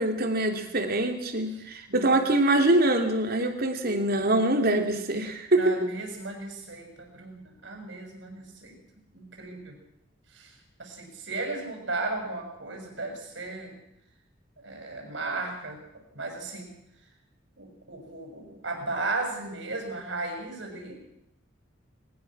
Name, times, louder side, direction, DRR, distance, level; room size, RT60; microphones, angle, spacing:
voice 1, 0.0-5.9, right 1 dB, 50° right, 5 dB, 3.0 m, -24 dB
voice 2, 5.5-8.8 9.1-9.7 10.3-10.5 10.8-13.8 14.6-15.8 16.1-16.7 17.6-20.9, right 3 dB, 70° right, 2 dB, 6.7 m, -35 dB
21.5 x 20.0 x 6.2 m, 0.80 s
head